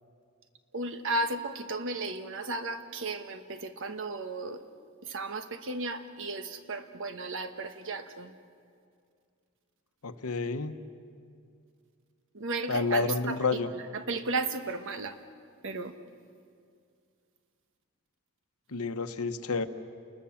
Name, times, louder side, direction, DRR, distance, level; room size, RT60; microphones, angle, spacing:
voice 1, 0.7-4.6 5.0-8.3 12.3-15.2 15.6-15.9, right 3 dB, 60° right, 8 dB, 1.2 m, -34 dB
voice 2, 10.0-10.8 12.7-13.7 18.7-19.7, left 3 dB, 70° left, 10 dB, 1.0 m, -29 dB
30.0 x 20.5 x 7.1 m, 2.3 s
head